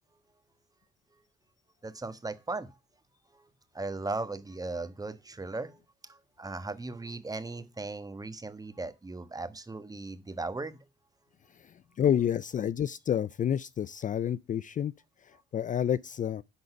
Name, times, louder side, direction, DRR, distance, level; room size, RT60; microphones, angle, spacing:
voice 1, 1.8-2.7 3.3-3.5 3.7-5.8 6.1-10.8, right 3 dB, 20° right, 1.3 m, -37 dB
voice 2, 12.0-14.9 15.5-16.4, left 9 dB, 40° left, 0.4 m, -29 dB
11.0 x 3.9 x 6.7 m
cardioid pair, 90°, 20 cm